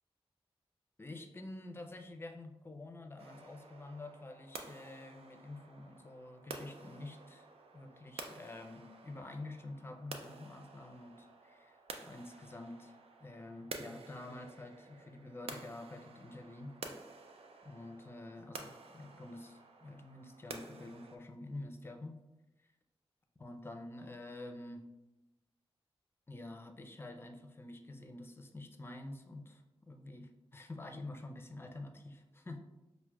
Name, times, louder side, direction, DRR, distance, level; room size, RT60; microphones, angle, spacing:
voice 1, 1.0-7.5 7.7-11.3 12.0-12.9 13.2-16.8 17.6-22.2 23.4-24.9 26.3-32.6, left 2 dB, 25° left, 6 dB, 0.4 m, -48 dB
sound 1, 3.2-21.2, right 4 dB, 75° right, 0.4 m, -51 dB
5.8 x 2.1 x 2.2 m, 0.98 s
cardioid pair, 65°, 10 cm